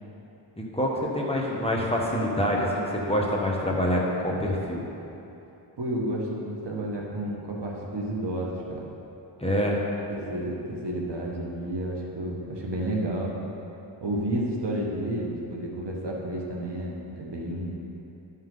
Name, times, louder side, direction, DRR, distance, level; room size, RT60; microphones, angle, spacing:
voice 1, 0.7-4.8 9.4-9.8, equal, 15° left, -3 dB, 1.3 m, -26 dB
voice 2, 5.8-8.9 10.1-13.4 14.0-17.7, right 1 dB, 60° right, -2 dB, 1.4 m, -31 dB
12.0 x 5.7 x 3.9 m, 2.9 s
wide cardioid pair, 80°, 46 cm